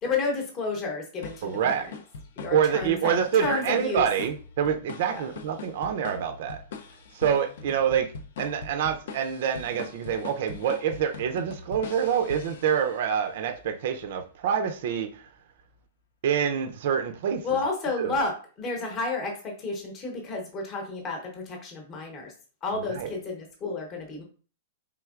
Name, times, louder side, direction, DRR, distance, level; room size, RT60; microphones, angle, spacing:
voice 1, 0.0-1.9 2.4-4.1 5.1-5.2 17.4-22.3 22.6-24.2, left 3 dB, 20° left, 2 dB, 0.9 m, -31 dB
sound 1, 1.2-13.2, left 4 dB, 60° left, 0.5 m, -42 dB
voice 2, 1.4-1.9 2.5-6.6 7.1-8.1 8.4-15.2 16.2-17.4 18.0-18.2 22.9-23.1, right 8 dB, 50° right, 6 dB, 0.5 m, -26 dB
4.5 x 3.5 x 2.4 m, 0.38 s
supercardioid pair, 170°, 0 cm